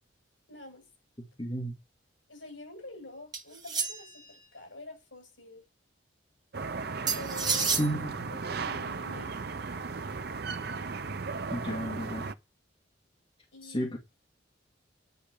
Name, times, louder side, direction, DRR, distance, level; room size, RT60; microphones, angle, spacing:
voice 1, 0.5-0.8 2.3-5.6 7.1-7.9 8.5-10.0 13.5-14.0, left 2 dB, 75° left, 7.8 m, -47 dB
voice 2, 1.4-1.7 7.8-8.3 11.5-12.3 13.6-14.0, equal, 30° left, 2.4 m, -32 dB
sound 1, 3.3-4.2 7.1-7.9, right 5 dB, 20° right, 1.7 m, -30 dB
sound 2, 6.5-12.3, right 4 dB, 55° right, 0.7 m, -36 dB
10.0 x 5.9 x 8.3 m
head